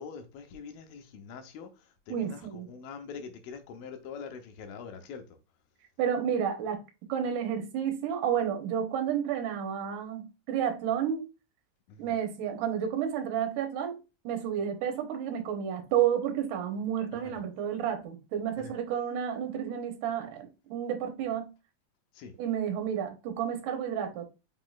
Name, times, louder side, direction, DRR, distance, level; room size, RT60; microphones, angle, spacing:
voice 1, 0.0-5.4 11.9-12.2 17.2-17.3 18.6-18.7 22.1-22.3, left 6 dB, 85° left, 2.6 m, -44 dB
voice 2, 2.1-2.7 6.0-6.8 7.1-11.2 12.0-14.0 14.2-21.5 22.4-24.2, right 9 dB, 70° right, 2.3 m, -31 dB
6.0 x 3.8 x 2.3 m
omnidirectional pair, 4.2 m